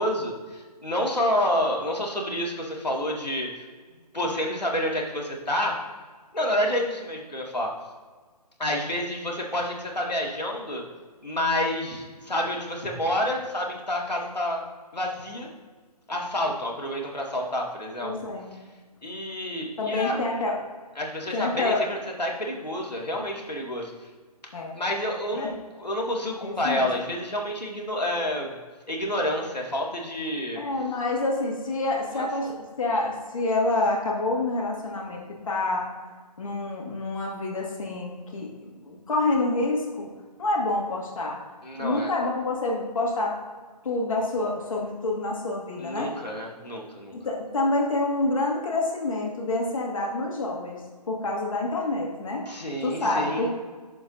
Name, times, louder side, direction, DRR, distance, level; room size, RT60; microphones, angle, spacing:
voice 1, 0.0-3.6 4.1-5.8 6.3-7.7 8.6-10.8 11.2-14.6 14.9-15.5 16.1-18.1 19.0-20.2 21.0-23.9 24.7-28.5 28.9-30.6 32.2-32.5 41.6-42.1 45.8-47.2 52.5-53.5, left 1 dB, 85° left, -1 dB, 2.1 m, -29 dB
voice 2, 18.0-18.5 19.8-20.5 21.3-21.8 24.5-24.8 25.3-25.5 26.4-26.9 30.6-35.8 36.4-40.1 40.4-41.4 41.8-43.3 43.8-46.1 47.1-50.8 51.1-52.5 52.8-53.5, left 2 dB, 55° left, -2 dB, 2.2 m, -27 dB
11.0 x 7.0 x 2.7 m, 1.4 s
figure-of-eight pair, 145°, 21 cm